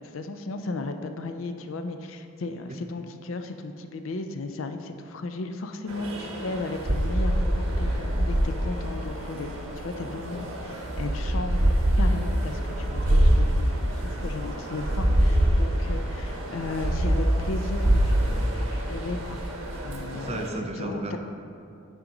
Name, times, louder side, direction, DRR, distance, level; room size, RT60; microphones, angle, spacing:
voice 1, 0.0-9.5 9.8-19.4 19.8-20.4 20.8-21.2, left 2 dB, 70° left, 7 dB, 0.5 m, -35 dB
sound 1, 5.9-20.5, right 1 dB, 85° right, 1.2 m, -25 dB
voice 2, 20.1-21.2, right 2 dB, 30° right, 2 dB, 0.6 m, -33 dB
8.7 x 5.1 x 3.9 m, 2.6 s
head